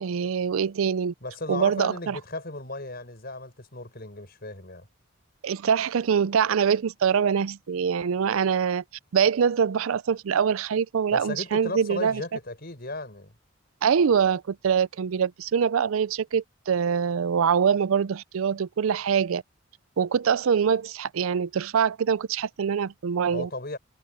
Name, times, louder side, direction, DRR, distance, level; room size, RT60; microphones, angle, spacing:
voice 1, 0.0-1.1 1.5-2.2 5.4-8.8 9.1-12.2 13.8-19.4 20.0-23.5, right 7 dB, 80° right, 0.4 m, -24 dB
voice 2, 1.2-4.9 11.1-13.3 23.3-23.8, left 2 dB, 45° left, 7.1 m, -35 dB
head